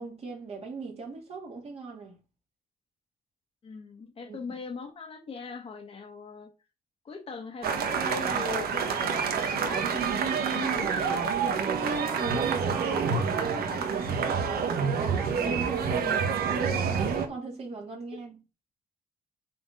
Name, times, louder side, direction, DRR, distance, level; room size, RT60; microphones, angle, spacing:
voice 1, 0.0-2.2 4.2-4.4 11.6-14.4 14.8-18.4, right 4 dB, 40° right, 2.9 m, -38 dB
voice 2, 3.6-6.5 7.0-11.3 16.0-16.3 18.1-18.2, left 5 dB, 35° left, 1.4 m, -40 dB
sound 1, 7.6-17.3, right 6 dB, 75° right, 1.4 m, -28 dB
7.5 x 4.3 x 5.2 m
wide cardioid pair, 175°, 16 cm